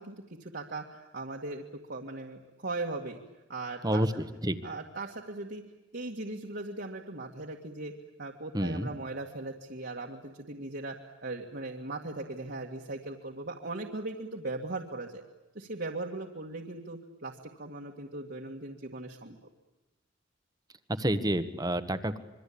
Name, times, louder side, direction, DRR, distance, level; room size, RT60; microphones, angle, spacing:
voice 1, 0.0-1.6 1.9-3.2 3.5-4.0 4.6-5.6 5.9-7.9 8.2-15.2 15.5-19.4, right 2 dB, 60° right, 0 dB, 2.0 m, -39 dB
voice 2, 3.8-4.6 8.5-8.9 20.9-22.2, right 1 dB, 20° right, 10 dB, 1.4 m, -29 dB
27.0 x 23.5 x 8.7 m, 1.1 s
head